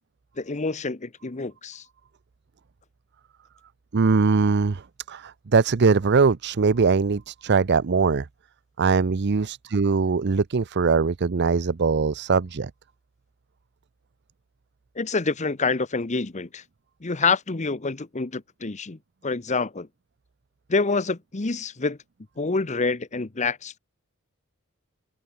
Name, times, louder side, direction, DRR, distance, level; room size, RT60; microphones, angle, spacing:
voice 1, 0.4-1.8 15.0-16.6 17.0-19.9 20.7-22.0 22.4-23.8, left 4 dB, 35° left, 0.9 m, -27 dB
voice 2, 3.9-8.3 8.8-12.7, right 4 dB, 55° right, 0.6 m, -21 dB
head